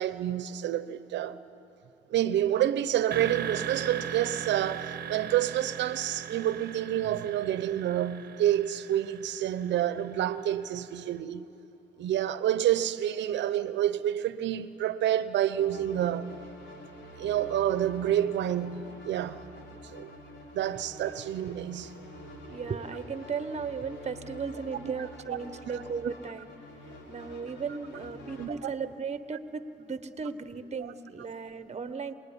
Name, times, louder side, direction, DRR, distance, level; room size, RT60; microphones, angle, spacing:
voice 1, 0.0-1.4 2.1-11.5 12.0-16.3 17.2-19.4 19.7-20.1 20.5-21.9 24.7-24.9 25.3-25.4 25.7-25.8 28.4-28.5 30.8-30.9, right 11 dB, 80° right, 1.0 m, -28 dB
sound 1, 3.1-10.9, right 8 dB, 60° right, 1.1 m, -39 dB
sound 2, 15.5-28.5, equal, 80° left, 4.6 m, -47 dB
voice 2, 22.5-26.5 27.1-32.1, right 5 dB, 35° right, 1.4 m, -36 dB
27.0 x 20.0 x 10.0 m
cardioid pair, 80°, 18 cm